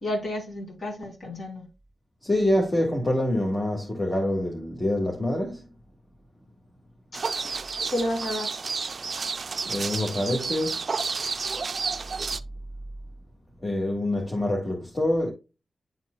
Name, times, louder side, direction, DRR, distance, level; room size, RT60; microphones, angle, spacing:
voice 1, 0.0-1.7 7.1-7.5 7.9-8.5, left 1 dB, 45° left, 3.8 m, -31 dB
voice 2, 2.2-5.6 9.7-10.9 13.6-15.3, left 1 dB, 20° left, 1.8 m, -26 dB
sound 1, 7.1-12.4, right 4 dB, 50° right, 0.4 m, -31 dB
11.0 x 4.4 x 2.4 m
wide cardioid pair, 130°, 0 cm